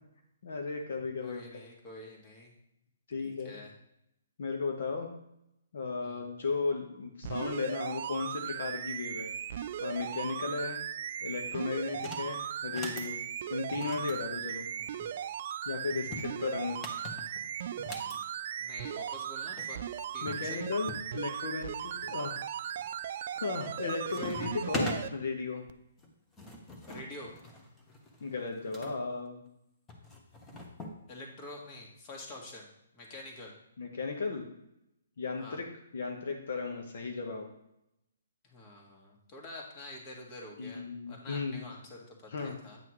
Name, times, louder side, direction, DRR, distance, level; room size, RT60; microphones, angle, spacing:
voice 1, 0.4-1.4 3.1-3.6 4.4-5.1 5.7-10.8 11.2-13.2 13.5-14.7 15.6-16.8 20.2-22.4 23.4-25.6 28.2-29.4 33.8-34.4 35.2-35.6 35.9-37.5 40.6-41.6 42.3-42.6, left 4 dB, 65° left, 2 dB, 1.2 m, -35 dB
voice 2, 1.2-2.5 3.2-3.7 6.0-6.2 18.6-19.8 20.1-20.6 26.9-27.3 31.1-32.7 32.9-33.5 35.4-35.6 38.4-42.8, left 1 dB, 30° left, 0 dB, 1.9 m, -47 dB
sound 1, 7.2-25.1 25.7-25.8, right 9 dB, 50° right, 0.4 m, -38 dB
sound 2, 11.9-12.3 12.6-13.1 13.7-15.1 15.9-18.2 19.3-19.4 19.6-19.7 20.3-21.1 21.6-22.1 22.7-23.0 23.4-23.8 24.1-25.0 26.0-28.9 29.9-31.0, left 1 dB, 15° left, 1.2 m, -41 dB
9.1 x 5.7 x 3.2 m, 0.81 s
hypercardioid pair, 145°, 0 cm